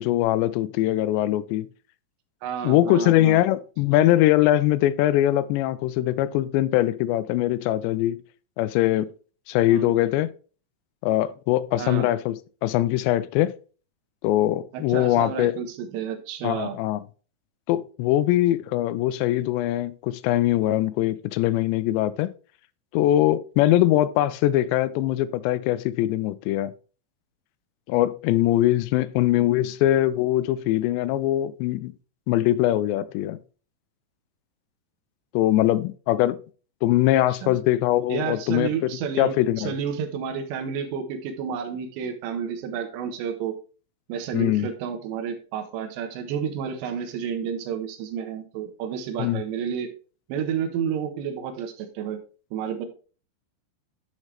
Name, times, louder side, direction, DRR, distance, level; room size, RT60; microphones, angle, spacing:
voice 1, 0.0-1.7 2.6-8.2 8.6-9.1 9.5-10.3 11.0-12.4 12.6-13.5 14.2-15.5 16.4-17.0 17.7-22.3 22.9-26.7 27.9-31.9 32.3-33.4 35.3-36.4 36.8-38.9 39.2-39.7 44.3-44.7 49.2-49.4, left 14 dB, 85° left, 2.7 m, -22 dB
voice 2, 2.4-3.4 9.7-9.9 11.8-12.1 14.7-16.8 29.4-29.7 37.4-37.5 38.1-43.6 44.1-49.9 50.3-52.2 52.5-52.9, right 7 dB, 80° right, 3.4 m, -30 dB
10.5 x 6.1 x 3.3 m
omnidirectional pair, 5.1 m